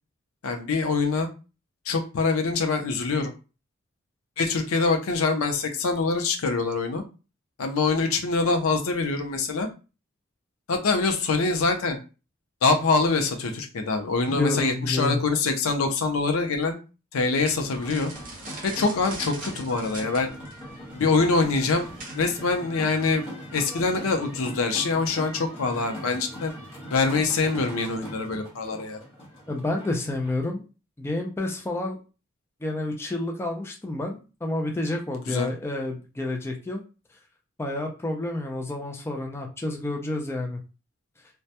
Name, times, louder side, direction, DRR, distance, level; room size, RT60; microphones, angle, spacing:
voice 1, 0.4-1.3 1.9-3.3 4.4-7.0 7.6-9.7 10.7-12.0 12.6-16.8 17.1-18.1 18.6-20.3 20.9-21.9 22.1-23.2 23.5-26.5 26.9-29.0 35.3-35.5, left 4 dB, 90° left, 5 dB, 0.5 m, -24 dB
voice 2, 14.3-15.2 29.5-30.6 31.0-32.0 32.6-36.8 37.6-40.6, left 2 dB, 10° left, 2 dB, 0.3 m, -29 dB
sound 1, 17.4-22.5, right 3 dB, 40° right, 0.7 m, -42 dB
sound 2, 17.7-30.3, equal, 30° left, 0.9 m, -41 dB
2.1 x 2.1 x 2.7 m, 0.32 s
head